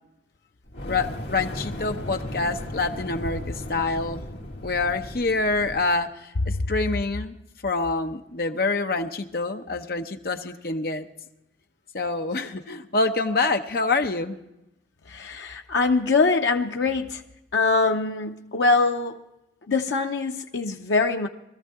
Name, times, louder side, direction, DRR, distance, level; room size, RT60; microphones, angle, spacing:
Fire, 0.6-5.9, left 1 dB, 75° left, 2.0 m, -36 dB
voice 1, 0.9-4.2 4.6-6.1 6.7-7.3 7.6-11.0 11.9-14.4, left 3 dB, 55° left, 0.8 m, -26 dB
voice 2, 15.1-17.2 17.5-19.2 19.7-21.3, left 3 dB, 90° left, 0.7 m, -23 dB
20.0 x 13.5 x 3.6 m
head